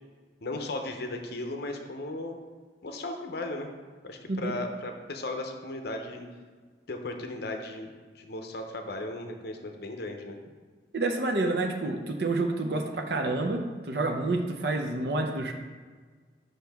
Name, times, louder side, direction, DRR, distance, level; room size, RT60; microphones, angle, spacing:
voice 1, 0.4-2.4 2.8-3.7 4.0-6.3 6.9-7.9 8.2-10.4, left 2 dB, 60° left, 4 dB, 0.7 m, -36 dB
voice 2, 10.9-15.5, right 2 dB, 60° right, 4 dB, 0.6 m, -28 dB
7.6 x 5.7 x 3.5 m, 1.5 s
head